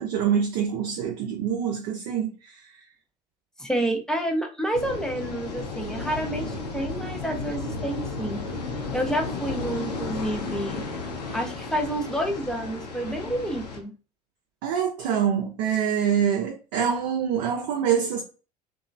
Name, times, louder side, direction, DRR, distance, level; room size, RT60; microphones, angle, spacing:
voice 1, 0.0-2.6 14.6-18.2, right 8 dB, 55° right, 0.5 m, -25 dB
voice 2, 3.6-8.4 8.9-10.8 11.3-13.9, right 1 dB, 5° left, 0.5 m, -29 dB
sound 1, 4.7-13.8, left 3 dB, 75° left, 0.7 m, -33 dB
2.8 x 2.2 x 2.5 m
figure-of-eight pair, 65°, 21 cm